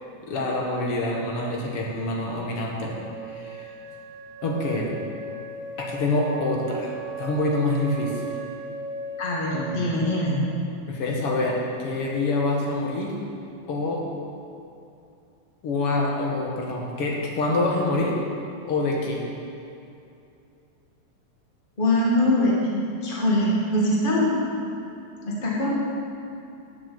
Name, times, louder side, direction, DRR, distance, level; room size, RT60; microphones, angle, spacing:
voice 1, 0.2-3.0 3.3-3.6 4.4-4.9 5.8-6.9 7.2-8.2 9.5-10.0 10.7-13.2 13.7-14.1 15.6-18.2 18.6-19.3, left 2 dB, 55° left, -1 dB, 1.8 m, -26 dB
Wind instrument woodwind instrument, 2.8-10.6, right 3 dB, 75° right, 2.8 m, -37 dB
voice 2, 9.2-10.4 21.8-24.4 25.2-25.7, left 1 dB, 20° left, -5 dB, 1.6 m, -23 dB
10.5 x 7.9 x 7.1 m, 2.6 s
omnidirectional pair, 4.1 m